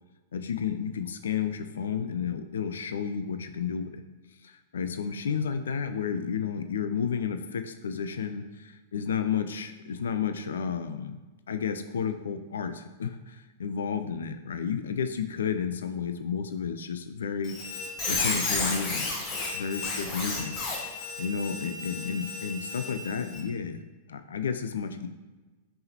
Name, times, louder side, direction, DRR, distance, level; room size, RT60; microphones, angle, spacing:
voice 1, 0.3-3.9 4.4-11.1 11.5-17.5 18.1-19.1 19.5-20.6 21.2-23.8 24.1-25.1, left 7 dB, 65° left, 9 dB, 0.3 m, -31 dB
Squeak, 17.4-23.4, left 3 dB, 30° left, 0.9 m, -32 dB
5.4 x 3.4 x 2.8 m, 1.2 s
figure-of-eight pair, 95°, 0 cm